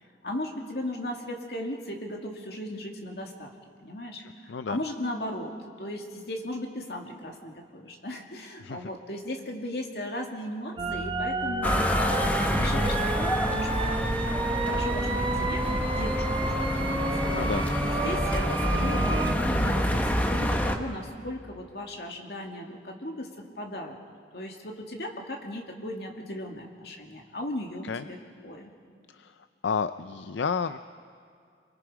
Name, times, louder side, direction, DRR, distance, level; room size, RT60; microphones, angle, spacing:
voice 1, 0.2-3.5 3.8-5.5 5.8-11.9 12.2-17.0 17.8-23.3 23.6-24.0 24.3-28.2 28.4-28.7, left 1 dB, 60° left, 1 dB, 2.4 m, -37 dB
voice 2, 4.2-4.8 8.6-8.9 17.3-17.7 27.8-28.0 29.1-29.3 29.6-30.8, left 5 dB, 85° left, 11 dB, 0.5 m, -31 dB
sound 1, 10.8-19.3, right 2 dB, 25° right, 1.3 m, -30 dB
sound 2, 11.6-20.8, equal, 10° left, 1.0 m, -27 dB
28.5 x 23.5 x 5.0 m, 2.3 s
head